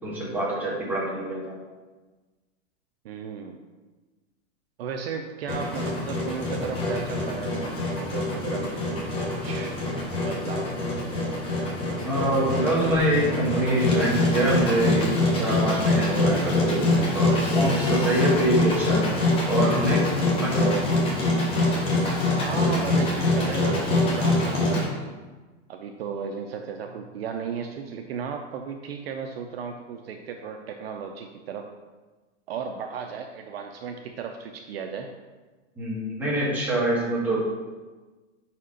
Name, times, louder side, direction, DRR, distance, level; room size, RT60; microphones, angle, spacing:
voice 1, 0.0-1.5 12.0-19.1 19.5-20.1 20.4-20.8 35.8-37.4, right 1 dB, 5° right, -7 dB, 1.3 m, -25 dB
voice 2, 3.0-3.6 4.8-8.9 9.4-9.8 10.3-10.7 18.1-18.6 22.4-25.1 25.7-31.6 32.5-35.1, right 6 dB, 55° right, 4 dB, 0.5 m, -35 dB
Engine, 5.5-24.8, left 2 dB, 15° left, 0.8 m, -24 dB
5.0 x 4.3 x 4.9 m, 1.3 s
supercardioid pair, 160°, 37 cm